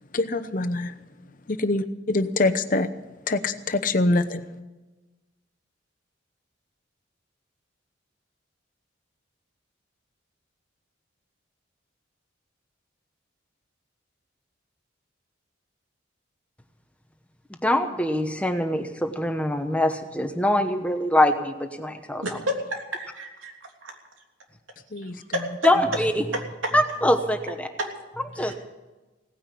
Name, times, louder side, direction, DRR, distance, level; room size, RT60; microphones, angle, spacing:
voice 1, 0.1-0.9 1.5-2.9 3.3-4.5 24.9-25.2, left 2 dB, 45° left, 8 dB, 0.9 m, -24 dB
voice 2, 17.6-22.2 25.1-25.2 25.6-26.1 26.7-27.7 28.3-28.5, left 1 dB, 5° left, 7 dB, 1.0 m, -23 dB
voice 3, 22.2-23.5 23.8-23.9 25.0-25.4 26.3-26.7 27.8-27.9 28.4-28.5, equal, 85° right, 2 dB, 3.2 m, -31 dB
17.5 x 10.0 x 8.3 m, 1.2 s
head